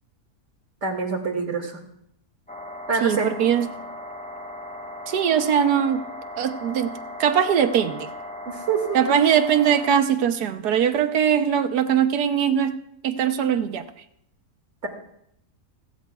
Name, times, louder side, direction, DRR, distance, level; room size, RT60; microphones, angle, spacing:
voice 1, 0.8-1.8 2.9-3.3 8.5-9.0 14.8-14.9, right 5 dB, 45° right, 2.4 m, -25 dB
sound 1, 2.5-10.0, left 1 dB, 5° left, 0.6 m, -37 dB
voice 2, 3.0-3.7 5.1-6.0 6.4-6.9 7.2-8.1 8.9-12.8 13.0-13.9, right 8 dB, 80° right, 1.4 m, -21 dB
29.5 x 12.5 x 2.4 m
omnidirectional pair, 1.7 m